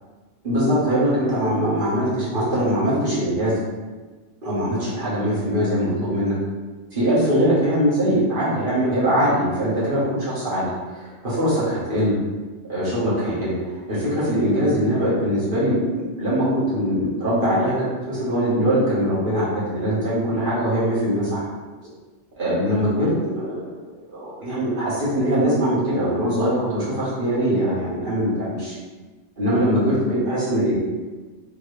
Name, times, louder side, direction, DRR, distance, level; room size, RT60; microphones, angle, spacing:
voice 1, 0.4-3.6 4.4-6.4 6.9-12.1 12.7-21.4 22.3-23.7 24.1-28.7 29.4-30.7, equal, 45° right, -10 dB, 1.7 m, -22 dB
3.8 x 3.2 x 3.3 m, 1.3 s
omnidirectional pair, 1.3 m